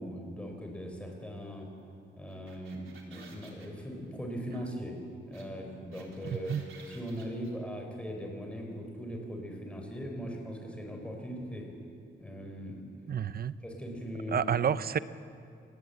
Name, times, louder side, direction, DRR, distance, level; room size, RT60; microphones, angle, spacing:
voice 1, 0.0-1.7 2.2-5.0 5.3-6.5 6.9-11.7 12.2-12.8 13.6-14.5, equal, 5° left, 2 dB, 4.3 m, -39 dB
sound 1, 2.3-3.7 5.3-5.4 5.7-7.5, right 5 dB, 85° right, 3.8 m, -54 dB
voice 2, 6.2-6.6 13.1-13.5 14.3-15.0, right 8 dB, 50° right, 14 dB, 0.7 m, -29 dB
26.5 x 19.5 x 8.1 m, 2.4 s
wide cardioid pair, 165°, 20 cm